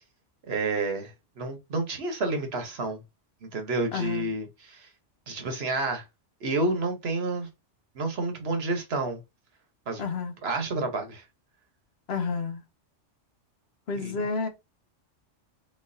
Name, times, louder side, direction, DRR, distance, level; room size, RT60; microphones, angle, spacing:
voice 1, 0.5-3.0 3.4-4.9 5.3-6.0 6.4-7.5 7.9-9.2 9.9-10.0 10.4-11.2 13.9-14.1, right 2 dB, 60° right, 1.2 m, -30 dB
voice 2, 3.9-4.3 10.0-10.3 12.1-12.6 13.9-14.5, left 4 dB, 60° left, 1.0 m, -30 dB
4.2 x 3.8 x 2.6 m
omnidirectional pair, 1.3 m